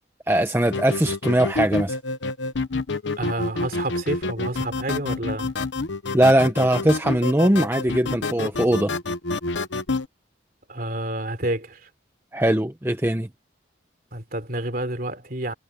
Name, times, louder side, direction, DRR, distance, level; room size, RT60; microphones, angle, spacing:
voice 1, 0.3-2.0 6.1-8.9 12.3-13.3, right 1 dB, 10° right, 0.8 m, -20 dB
sound 1, 0.7-10.1, left 3 dB, 70° left, 1.0 m, -28 dB
voice 2, 3.2-5.5 10.7-11.9 14.1-15.5, right 1 dB, 45° right, 3.5 m, -29 dB
head